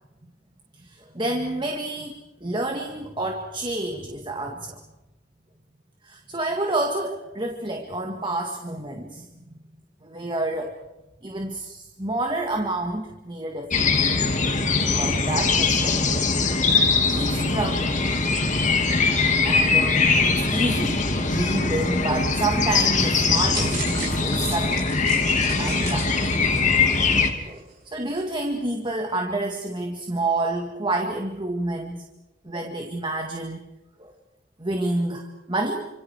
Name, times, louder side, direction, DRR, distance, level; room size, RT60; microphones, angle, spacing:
voice 1, 0.8-4.8 6.0-9.6 10.0-10.8 11.2-13.9 14.8-16.3 17.1-18.0 19.4-24.9 25.5-26.5 27.4-32.0 32.4-33.6 34.0-34.1 34.6-35.9, right 2 dB, 25° right, 3 dB, 2.0 m, -29 dB
sound 1, 13.7-27.3, left 4 dB, 40° left, 2.8 m, -22 dB
sound 2, 23.0-27.2 27.6-27.7 28.2-28.3, right 4 dB, 55° right, 7.3 m, -35 dB
29.5 x 26.5 x 4.8 m, 0.96 s
head